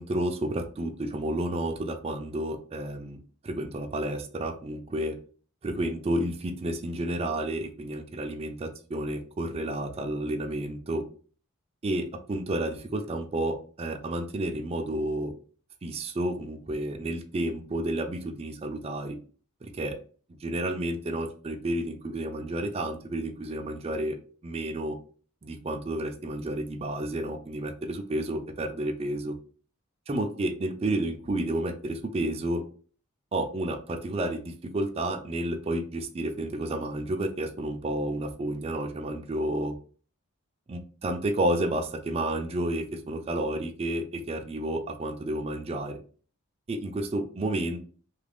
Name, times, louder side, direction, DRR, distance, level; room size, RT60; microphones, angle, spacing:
voice 1, 0.0-5.2 5.6-11.0 11.8-15.3 15.8-19.2 19.6-20.0 20.4-24.2 24.4-25.0 25.4-29.3 30.1-32.6 33.3-39.7 40.7-46.0 46.7-47.8, right 1 dB, 30° right, 5 dB, 0.4 m, -31 dB
2.8 x 2.5 x 3.4 m, 0.41 s
head